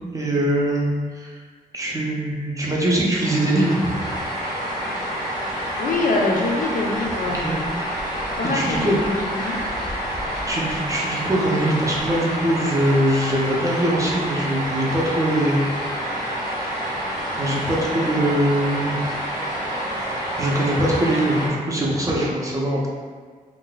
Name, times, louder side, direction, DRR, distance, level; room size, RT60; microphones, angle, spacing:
voice 1, 0.1-0.9 1.1-1.4 1.7-4.1 7.3-7.6 8.4-9.0 10.5-15.7 17.3-19.0 20.4-22.9, right 1 dB, 20° right, -4 dB, 0.5 m, -22 dB
sound 1, 3.2-21.5, equal, 20° left, 0.7 m, -28 dB
voice 2, 5.8-7.5 8.4-9.6, left 2 dB, 60° left, -1 dB, 0.4 m, -24 dB
2.6 x 2.2 x 3.8 m, 1.5 s
wide cardioid pair, 145°, 16 cm